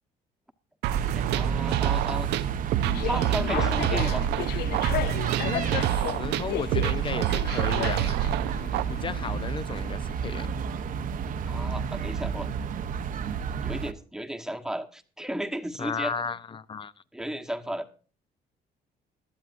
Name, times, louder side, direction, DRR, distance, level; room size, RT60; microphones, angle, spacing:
sound 1, 0.8-8.8, right 13 dB, 80° right, 0.7 m, -28 dB
sound 2, 0.9-13.9, right 7 dB, 55° right, 1.0 m, -31 dB
voice 1, 1.1-2.3 2.8-4.3 11.5-12.5 13.6-16.1 17.1-17.9, right 1 dB, 5° right, 1.3 m, -34 dB
sound 3, 2.8-9.6, left 14 dB, 70° left, 0.5 m, -34 dB
voice 2, 5.4-5.9 6.1-8.2 8.9-10.6 15.8-16.9, left 6 dB, 30° left, 0.8 m, -34 dB
21.0 x 12.5 x 2.6 m
cardioid pair, 110°, 17 cm